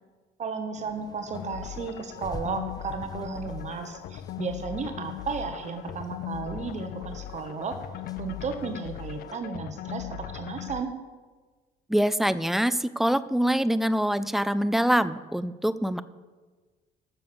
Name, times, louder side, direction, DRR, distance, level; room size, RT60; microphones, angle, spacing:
voice 1, 0.4-7.8 8.2-10.9, right 5 dB, 45° right, 6 dB, 1.2 m, -34 dB
sound 1, 0.7-9.3, left 3 dB, 25° left, 0.8 m, -49 dB
sound 2, 1.3-10.8, left 13 dB, 60° left, 0.4 m, -38 dB
voice 2, 11.9-16.0, equal, ahead, 14 dB, 0.4 m, -24 dB
13.0 x 6.9 x 6.9 m, 1.4 s
cardioid pair, 110°, 17 cm